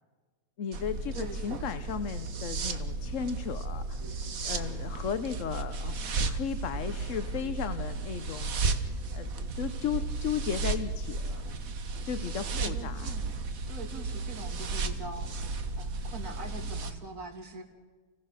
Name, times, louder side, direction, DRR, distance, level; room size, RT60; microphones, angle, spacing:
voice 1, 0.6-6.0 6.3-11.4 12.0-13.1, left 7 dB, 60° left, 10 dB, 1.2 m, -35 dB
sound 1, 0.7-16.9, right 3 dB, 70° right, 1.7 m, -34 dB
voice 2, 1.1-1.7 12.5-17.6, right 3 dB, 85° right, 3 dB, 3.4 m, -43 dB
29.0 x 17.5 x 6.6 m, 1.4 s
omnidirectional pair, 1.5 m